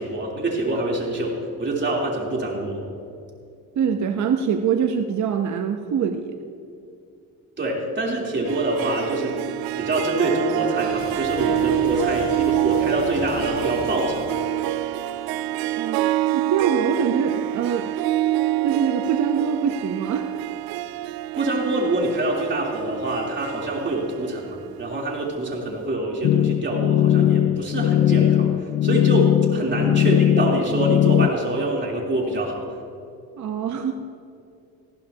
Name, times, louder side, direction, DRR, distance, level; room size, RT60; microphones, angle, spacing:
voice 1, 0.0-2.8 7.6-9.4 9.8-14.3 21.4-32.7, right 1 dB, 35° right, -2 dB, 3.5 m, -25 dB
voice 2, 3.8-6.4 15.8-17.9 18.6-20.3 29.5-29.7 33.4-33.9, right 7 dB, 55° right, 5 dB, 0.9 m, -24 dB
Harp, 8.4-25.2, right 14 dB, 85° right, 0.6 m, -27 dB
sound 1, 10.9-15.0, left 2 dB, 75° left, 3.3 m, -39 dB
sound 2, 26.2-31.3, left 11 dB, 40° left, 0.4 m, -19 dB
20.0 x 15.0 x 2.9 m, 2.5 s
cardioid pair, 90°, 35 cm